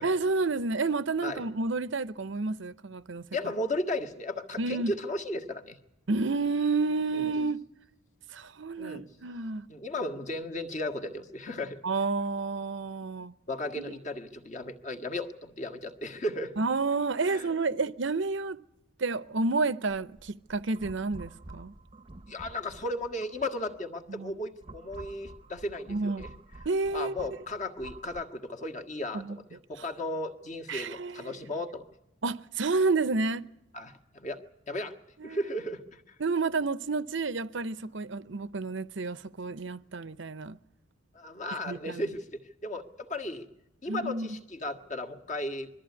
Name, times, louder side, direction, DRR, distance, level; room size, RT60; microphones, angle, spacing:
voice 1, 0.0-3.2 4.6-4.9 6.1-7.6 8.3-9.6 11.8-13.3 13.8-13.9 16.6-18.6 19.0-21.7 24.1-24.3 25.9-26.3 26.6-27.1 29.1-29.4 30.7-31.4 32.2-33.4 35.2-35.4 36.2-40.6 41.7-42.0 43.9-44.4, right 3 dB, 65° right, 0.7 m, -30 dB
voice 2, 3.3-5.8 7.1-7.3 8.8-9.1 9.7-11.8 13.5-16.5 17.3-17.5 22.3-26.3 26.9-29.4 29.7-31.8 33.7-34.4 34.7-34.9 35.2-36.2 41.1-43.5 43.8-45.7, left 1 dB, 35° left, 1.7 m, -35 dB
sound 1, 19.9-23.8 24.3-28.2, right 2 dB, 25° right, 0.8 m, -49 dB
22.5 x 14.0 x 9.6 m
head